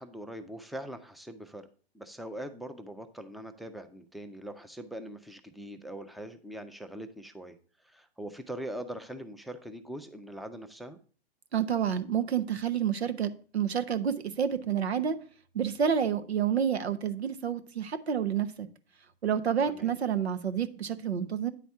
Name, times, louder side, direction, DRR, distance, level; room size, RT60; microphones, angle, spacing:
voice 1, 0.0-1.7 1.9-7.6 7.8-11.0 19.6-19.9, right 1 dB, ahead, 0.5 m, -42 dB
voice 2, 11.5-15.2 15.5-18.7 19.2-21.5, right 8 dB, 85° right, 0.8 m, -29 dB
9.3 x 4.2 x 4.6 m
hypercardioid pair, 110°, 31 cm